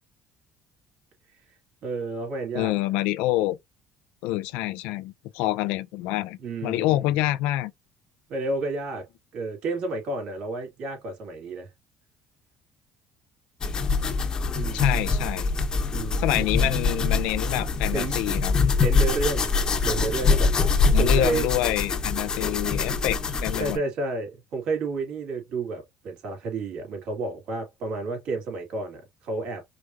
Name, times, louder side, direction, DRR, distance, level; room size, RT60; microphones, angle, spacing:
voice 1, 1.8-2.7 6.4-7.0 8.3-9.1 9.3-11.7 14.5-15.0 15.9-16.4 17.9-18.4 18.8-19.5 19.8-21.5 23.6-29.6, right 3 dB, 65° right, 2.8 m, -31 dB
voice 2, 2.5-3.6 4.2-7.7 14.7-15.5 16.2-18.5 20.9-23.8, left 16 dB, 80° left, 0.5 m, -27 dB
sound 1, 13.6-23.8, left 4 dB, 40° left, 1.0 m, -24 dB
5.0 x 3.1 x 2.5 m
supercardioid pair, 75°, 2 cm